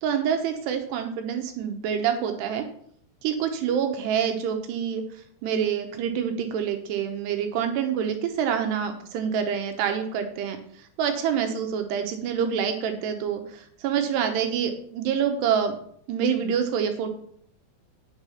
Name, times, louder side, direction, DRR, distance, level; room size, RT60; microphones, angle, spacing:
voice 1, 0.0-2.7 3.2-5.0 5.4-15.8 16.1-17.1, right 8 dB, 75° right, 6 dB, 2.9 m, -26 dB
8.9 x 6.6 x 5.6 m, 0.64 s
omnidirectional pair, 5.1 m